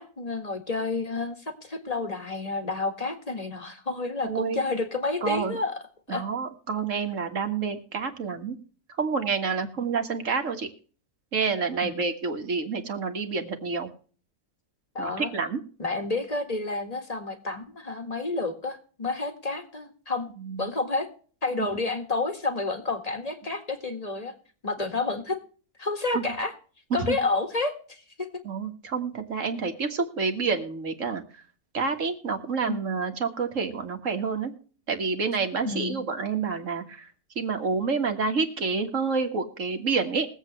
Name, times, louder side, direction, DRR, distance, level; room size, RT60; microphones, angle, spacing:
voice 1, 0.0-5.7 6.1-6.2 11.8-12.0 15.0-15.3 15.8-20.3 20.6-21.1 21.4-24.3 24.6-25.4 25.8-26.5 26.9-28.3 32.7-32.8 35.6-36.0, left 3 dB, 25° left, 5 dB, 1.9 m, -30 dB
voice 2, 4.2-4.6 5.2-5.6 6.1-8.6 9.0-10.7 11.3-13.9 15.0-15.6 20.5-20.6 21.6-21.7 26.1-26.2 26.9-27.2 28.5-31.2 31.7-34.5 34.9-37.1 37.4-40.3, right 5 dB, 55° right, 6 dB, 1.9 m, -28 dB
22.0 x 8.2 x 3.2 m, 0.41 s
omnidirectional pair, 1.6 m